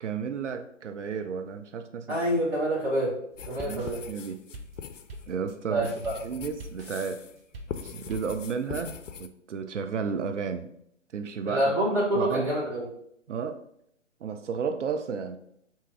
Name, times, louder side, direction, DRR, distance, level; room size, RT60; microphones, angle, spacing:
voice 1, 0.0-2.2 3.6-4.4 5.3-5.9 6.2-7.2 7.8-10.7 11.1-11.7 12.2-12.5 13.3-13.6 14.2-15.4, right 6 dB, 70° right, 8 dB, 0.5 m, -33 dB
voice 2, 2.1-3.1 3.5-4.0 5.7-6.1 11.4-12.9, right 1 dB, 5° right, -7 dB, 0.8 m, -26 dB
sound 1, 3.3-8.4, right 1 dB, 50° right, 0.8 m, -45 dB
sound 2, 3.4-7.4 7.7-9.3, left 7 dB, 75° left, 0.5 m, -41 dB
3.5 x 2.9 x 4.6 m, 0.70 s
figure-of-eight pair, 135°, 38 cm